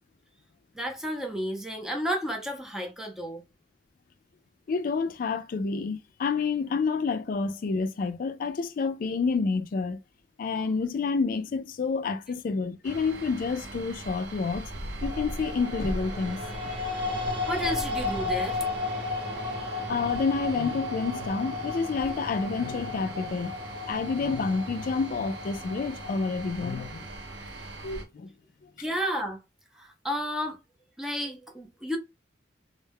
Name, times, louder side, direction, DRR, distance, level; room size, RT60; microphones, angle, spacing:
voice 1, 0.7-3.4 17.5-18.6 28.8-29.4 29.8-30.6 31.0-32.0, equal, 5° right, 0.5 m, -32 dB
voice 2, 4.7-10.0 10.4-14.7 15.0-16.7 19.9-23.6 23.9-27.1 27.8-28.3 28.6-28.7, left 4 dB, 50° left, 0.3 m, -29 dB
sound 1, 12.8-28.0, right 1 dB, 70° right, 0.6 m, -40 dB
sound 2, 15.0-27.2, left 3 dB, 30° right, 1.0 m, -34 dB
2.2 x 2.0 x 3.4 m
head